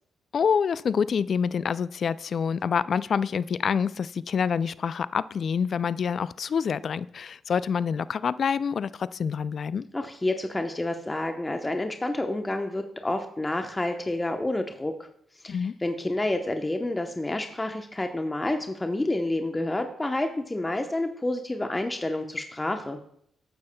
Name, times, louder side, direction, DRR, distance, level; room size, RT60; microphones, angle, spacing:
voice 1, 0.3-9.9 15.5-15.7, left 6 dB, 60° left, 18 dB, 0.3 m, -27 dB
voice 2, 9.9-15.1 15.4-23.0, left 2 dB, 20° left, 5 dB, 0.9 m, -29 dB
13.5 x 9.4 x 2.3 m, 0.69 s
hypercardioid pair, 45°, 0 cm